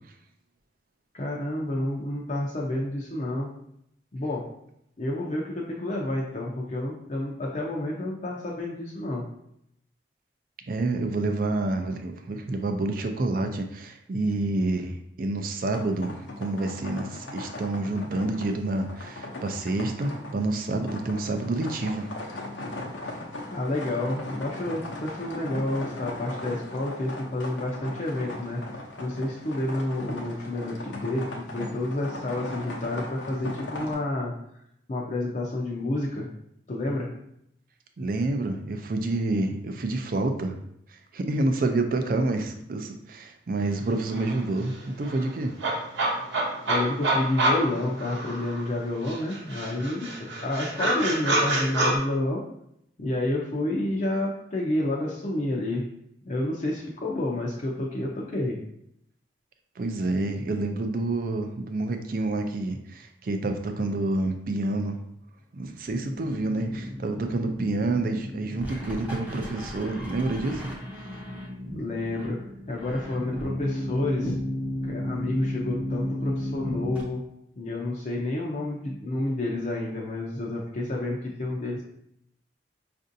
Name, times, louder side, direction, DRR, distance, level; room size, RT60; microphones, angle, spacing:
voice 1, 1.1-3.5 4.1-4.4 5.0-9.2 23.5-28.6 29.0-34.3 34.9-36.3 36.7-37.1 46.7-50.1 50.4-52.4 53.0-55.8 56.3-58.6 71.7-72.4 72.7-74.4 74.8-77.2 77.6-81.8, left 1 dB, 40° left, -3 dB, 0.5 m, -29 dB
voice 2, 10.7-22.1 38.0-40.6 40.9-45.5 59.8-65.0 65.5-70.7, right 2 dB, 50° right, 6 dB, 0.4 m, -28 dB
sound 1, 15.7-33.9, left 2 dB, 90° left, 0.7 m, -38 dB
sound 2, 43.8-43.9 44.1-48.7 49.1-51.9, right 2 dB, 75° right, 0.8 m, -27 dB
sound 3, 65.9-77.0, left 1 dB, 10° right, 0.6 m, -34 dB
5.2 x 2.5 x 2.6 m, 0.75 s
head